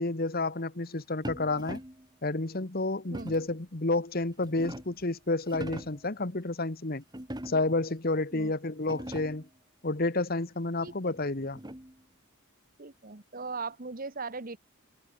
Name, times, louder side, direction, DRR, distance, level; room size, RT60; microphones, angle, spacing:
voice 1, 0.0-1.8 2.2-7.0 7.4-9.5 9.8-11.6, left 2 dB, 45° left, 1.4 m, -30 dB
sound 1, 1.2-2.1 3.1-3.6 4.2-5.0 5.4-6.1 7.1-7.8 8.4-8.5 8.8-9.5 10.9-12.0, right 1 dB, 20° right, 2.5 m, -42 dB
voice 2, 10.8-11.1 12.8-14.6, right 4 dB, 40° right, 1.3 m, -39 dB
head